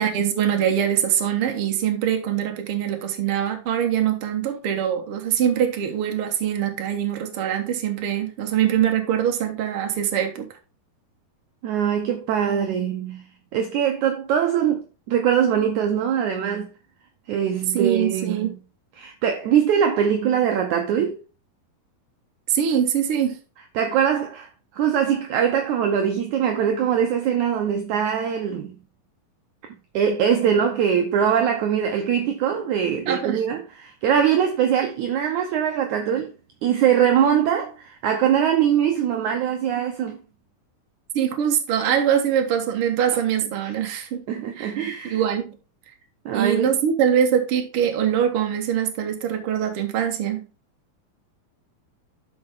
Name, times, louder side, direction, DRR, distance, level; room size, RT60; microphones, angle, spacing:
voice 1, 0.0-10.4 17.7-18.5 22.5-23.4 33.1-33.4 41.1-44.2 44.5-44.7 45.0-45.6 46.3-50.5, right 9 dB, 50° right, 1.8 m, -23 dB
voice 2, 11.6-13.2 13.5-16.7 17.3-18.5 19.0-21.2 23.8-28.8 29.9-36.3 36.6-40.2 44.3-45.2 46.3-46.7, right 8 dB, 70° right, 2.0 m, -22 dB
12.5 x 4.8 x 3.6 m
omnidirectional pair, 4.0 m